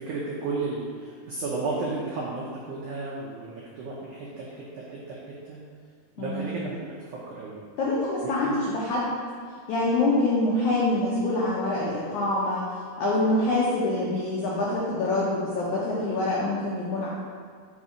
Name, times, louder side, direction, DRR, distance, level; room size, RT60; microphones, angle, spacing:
voice 1, 0.0-5.2 5.4-5.6 6.2-6.7 7.1-7.6 8.2-8.6, right 3 dB, 85° right, -6 dB, 1.7 m, -33 dB
voice 2, 6.2-6.5 7.8-9.1 9.7-12.6 13.0-17.1, left 2 dB, 90° left, -6 dB, 1.7 m, -25 dB
5.4 x 4.2 x 4.9 m, 2.1 s
omnidirectional pair, 4.6 m